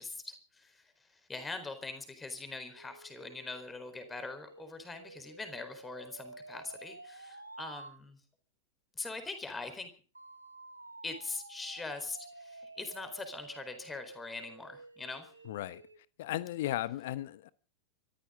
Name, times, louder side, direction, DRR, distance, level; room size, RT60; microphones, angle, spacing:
voice 1, 0.0-8.2 8.9-9.9 11.0-15.3, left 3 dB, 10° left, 4.3 m, -42 dB
sound 1, 2.7-8.0 10.1-16.0, right 2 dB, 85° right, 1.4 m, -51 dB
voice 2, 15.4-15.8 16.2-17.5, left 14 dB, 55° left, 1.1 m, -35 dB
25.5 x 14.5 x 3.9 m
figure-of-eight pair, 90°, 0 cm